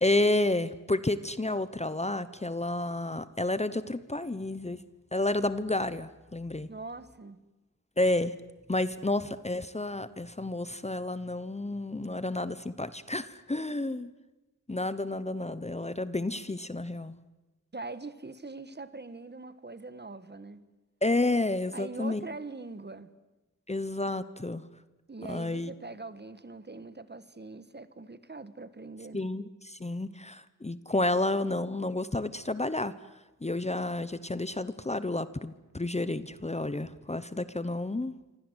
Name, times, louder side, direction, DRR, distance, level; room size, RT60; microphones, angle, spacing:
voice 1, 0.0-4.8 5.1-6.7 8.0-8.3 8.7-14.1 14.7-17.1 21.0-22.3 23.7-24.6 25.3-25.7 29.1-32.9 33.4-38.1, left 2 dB, 20° left, 0.9 m, -30 dB
voice 2, 6.6-7.4 17.7-20.6 21.7-23.1 25.1-29.3, right 3 dB, 35° right, 1.5 m, -42 dB
28.0 x 25.0 x 8.1 m
wide cardioid pair, 100°, 31 cm